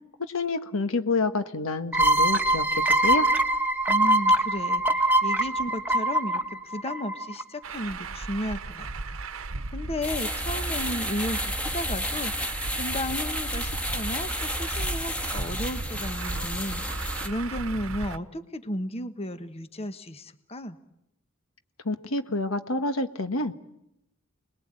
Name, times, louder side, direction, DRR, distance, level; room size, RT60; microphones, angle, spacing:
voice 1, 0.2-3.3 21.8-23.5, left 2 dB, 80° left, 8 dB, 1.5 m, -28 dB
sound 1, 1.9-7.4, right 1 dB, 10° right, 1.4 m, -23 dB
voice 2, 3.9-9.2 9.7-20.8, left 1 dB, 30° left, 9 dB, 1.2 m, -34 dB
Truck, 7.6-18.2, right 3 dB, 70° right, 1.0 m, -36 dB
sound 2, 10.0-17.3, equal, 5° left, 2.0 m, -31 dB
30.0 x 20.5 x 8.9 m, 0.85 s
head